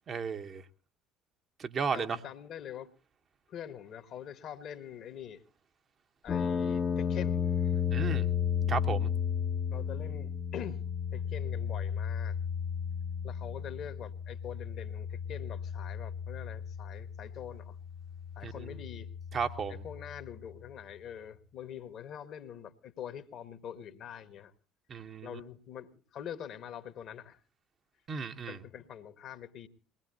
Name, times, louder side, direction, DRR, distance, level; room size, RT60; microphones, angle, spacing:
voice 1, 0.1-0.6 1.6-2.2 7.9-8.3 8.7-9.1 18.4-18.7 19.3-19.8 24.9-25.4 28.1-28.6, right 6 dB, 40° right, 1.0 m, -34 dB
voice 2, 1.9-2.9 3.5-5.4 6.2-7.8 9.7-10.8 11.1-12.4 13.2-17.8 18.3-19.1 19.7-24.5 25.2-27.4 28.5-29.7, left 9 dB, 50° left, 1.4 m, -44 dB
sound 1, 6.3-20.3, left 7 dB, 30° left, 0.9 m, -34 dB
22.0 x 19.5 x 2.8 m
figure-of-eight pair, 55°, 0 cm